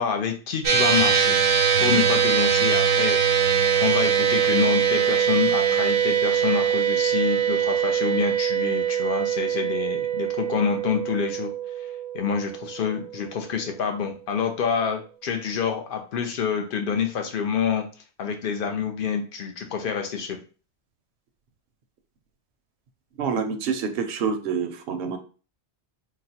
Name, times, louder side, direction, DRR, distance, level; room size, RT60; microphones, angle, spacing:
voice 1, 0.0-1.4 1.8-11.5 12.1-17.8 18.2-20.4, left 6 dB, 55° left, 4 dB, 0.7 m, -27 dB
sound 1, 0.6-13.2, right 7 dB, 85° right, 1.0 m, -22 dB
voice 2, 23.2-25.2, right 6 dB, 65° right, 7 dB, 0.7 m, -27 dB
3.9 x 2.1 x 2.8 m, 0.36 s
omnidirectional pair, 1.2 m